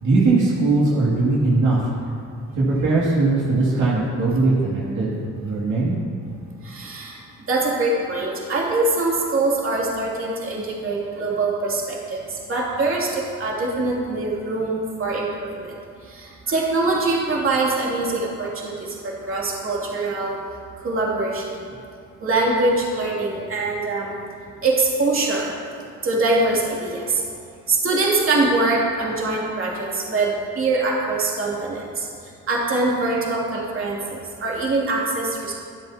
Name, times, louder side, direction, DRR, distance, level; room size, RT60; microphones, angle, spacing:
voice 1, 0.0-1.8 2.5-5.9, right 3 dB, 75° right, -6 dB, 2.5 m, -20 dB
voice 2, 6.6-7.2 7.5-15.7 16.1-20.4 20.8-21.6 22.2-24.1 24.6-25.5 26.0-27.2 27.7-32.1 32.5-35.5, right 2 dB, 45° right, -4 dB, 2.9 m, -23 dB
24.0 x 8.0 x 2.9 m, 2.3 s
cardioid pair, 90°, 30 cm